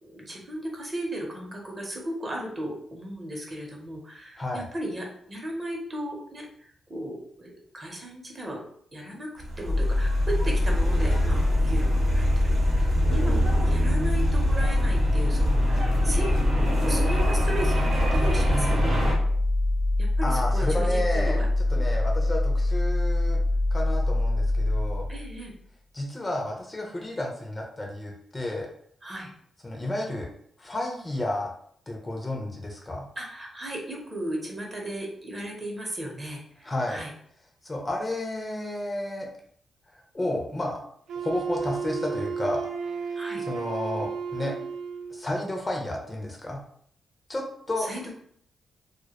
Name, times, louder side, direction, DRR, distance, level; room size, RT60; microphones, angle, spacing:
voice 1, 0.0-8.6 8.9-9.3 9.6-16.3 16.8-19.0 20.0-21.9 25.1-25.5 29.0-29.3 33.2-37.1 43.2-43.4 47.8-48.1, right 1 dB, 30° right, 0 dB, 0.7 m, -36 dB
voice 2, 4.4-4.7 13.1-13.6 20.2-21.4 21.7-23.4 23.7-25.1 25.9-28.7 29.6-30.3 30.6-31.5 31.9-33.1 36.6-37.0 37.6-39.3 39.9-40.8 41.2-42.7 43.4-44.5 45.1-46.6 47.3-47.9, left 1 dB, 20° left, 0 dB, 0.5 m, -31 dB
sound 1, 9.4-19.1, right 1 dB, 65° right, 0.7 m, -27 dB
sound 2, 9.6-25.4, left 2 dB, 75° left, 0.6 m, -24 dB
Wind instrument woodwind instrument, 41.1-45.2, right 6 dB, 90° right, 0.3 m, -33 dB
2.1 x 2.1 x 2.8 m, 0.64 s
cardioid pair, 100°, 0 cm